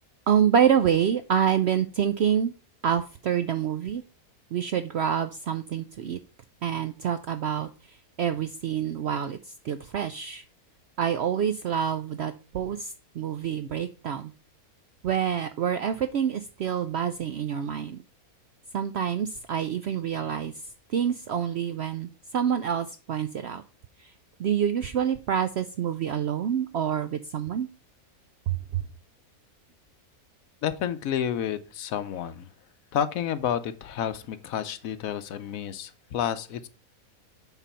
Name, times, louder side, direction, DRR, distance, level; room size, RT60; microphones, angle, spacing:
voice 1, 0.3-2.5 2.8-4.0 4.5-6.2 6.6-10.4 11.0-14.3 15.0-18.0 18.7-20.5 20.9-23.6 24.0-24.1 24.4-27.7 28.5-28.8, right 8 dB, 70° right, 10 dB, 0.6 m, -27 dB
voice 2, 30.6-32.5 32.9-36.7, left 9 dB, 70° left, 13 dB, 1.0 m, -30 dB
8.2 x 3.9 x 5.5 m, 0.36 s
omnidirectional pair, 1.6 m